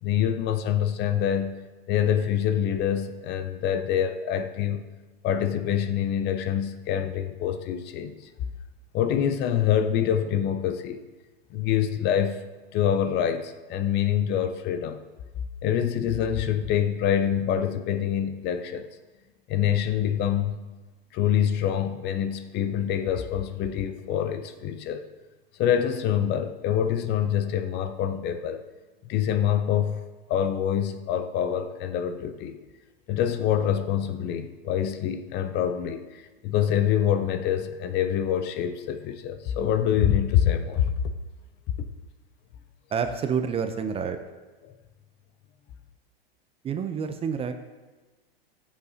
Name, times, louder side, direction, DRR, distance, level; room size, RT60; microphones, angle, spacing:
voice 1, 0.0-1.6 1.9-4.9 5.2-8.3 8.9-11.0 11.5-12.4 12.7-15.0 15.6-18.9 19.5-20.6 21.1-25.1 25.6-28.6 29.0-30.0 30.3-32.6 33.1-40.9 44.6-44.7, left 9 dB, 35° left, 10 dB, 0.6 m, -25 dB
voice 2, 42.9-44.2 46.6-47.5, right 6 dB, 20° right, 8 dB, 0.5 m, -28 dB
14.5 x 7.0 x 2.8 m, 1.2 s
hypercardioid pair, 110°, 30 cm